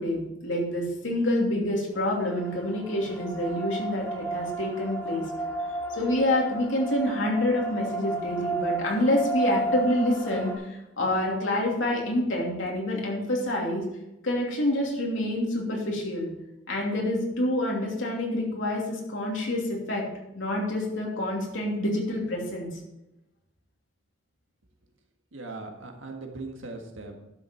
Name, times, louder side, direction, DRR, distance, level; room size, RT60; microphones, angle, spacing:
voice 1, 0.0-5.3 5.9-13.8 14.2-16.3 16.7-20.0 20.3-22.7, left 1 dB, 75° left, -1 dB, 2.9 m, -27 dB
sound 1, 2.0-10.6, right 2 dB, 10° left, 1.7 m, -33 dB
voice 2, 25.3-27.2, right 3 dB, 80° right, 3 dB, 1.7 m, -39 dB
11.5 x 6.8 x 4.5 m, 0.92 s
head